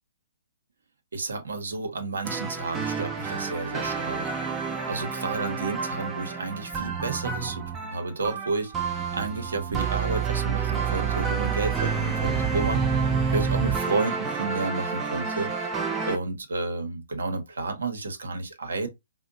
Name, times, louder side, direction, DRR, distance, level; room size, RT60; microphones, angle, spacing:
voice 1, 1.1-4.3 4.9-8.7 9.1-13.0 13.3-15.5 16.0-18.9, right 3 dB, 80° right, 0.8 m, -31 dB
sound 1, 2.3-16.2, right 6 dB, 15° right, 0.5 m, -28 dB
4.3 x 2.1 x 2.5 m
hypercardioid pair, 135°, 0 cm